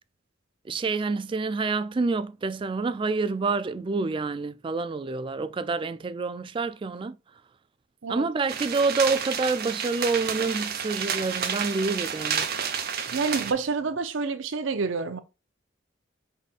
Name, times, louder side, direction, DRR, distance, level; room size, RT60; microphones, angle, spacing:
voice 1, 0.7-7.2 8.1-12.5, right 4 dB, 25° right, 0.3 m, -27 dB
sound 1, 8.5-13.5, right 7 dB, 55° right, 0.8 m, -30 dB
voice 2, 13.1-15.2, right 4 dB, 85° right, 0.6 m, -28 dB
4.8 x 4.2 x 2.4 m
head